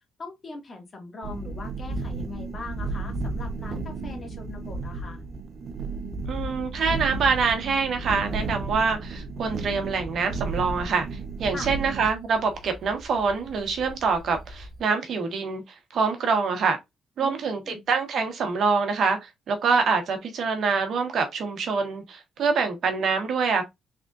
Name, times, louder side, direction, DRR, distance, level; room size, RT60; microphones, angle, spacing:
voice 1, 0.2-5.2 11.5-11.7 17.2-17.8, left 3 dB, 40° left, 1.7 m, -40 dB
sound 1, 1.2-14.8, right 3 dB, 50° right, 0.6 m, -34 dB
voice 2, 6.3-11.1 11.4-15.6 15.9-16.8 17.2-23.6, right 5 dB, 65° right, 1.2 m, -25 dB
3.6 x 3.5 x 2.4 m
cardioid pair, 90°, 0 cm